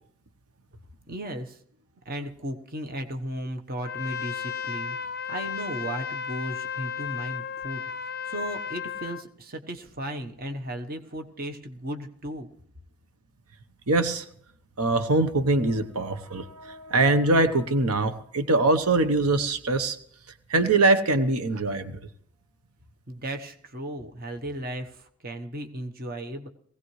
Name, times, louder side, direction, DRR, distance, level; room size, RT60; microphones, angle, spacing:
voice 1, 1.1-1.6 2.0-5.0 5.3-12.5 23.1-26.5, right 1 dB, 40° right, 6 dB, 1.0 m, -35 dB
Trumpet, 3.8-9.2, left 6 dB, 45° left, 0.5 m, -34 dB
voice 2, 13.9-14.2 14.8-20.0 20.5-22.0, right 2 dB, 80° right, 10 dB, 0.9 m, -23 dB
19.5 x 16.5 x 3.2 m, 0.65 s
head